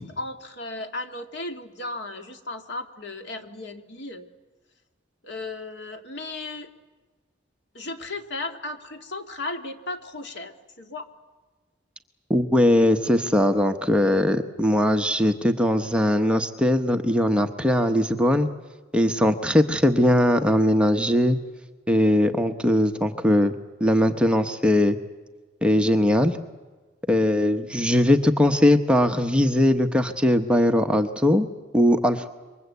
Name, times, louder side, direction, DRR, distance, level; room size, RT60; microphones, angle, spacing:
voice 1, 0.0-4.3 5.2-6.7 7.7-11.1, left 2 dB, 60° left, 6 dB, 2.0 m, -35 dB
voice 2, 12.3-18.5 18.9-21.4 21.9-23.5 23.8-25.0 25.6-26.4 27.1-31.5 31.7-32.3, left 1 dB, 5° right, 5 dB, 1.0 m, -20 dB
27.5 x 24.0 x 8.2 m, 1.3 s
head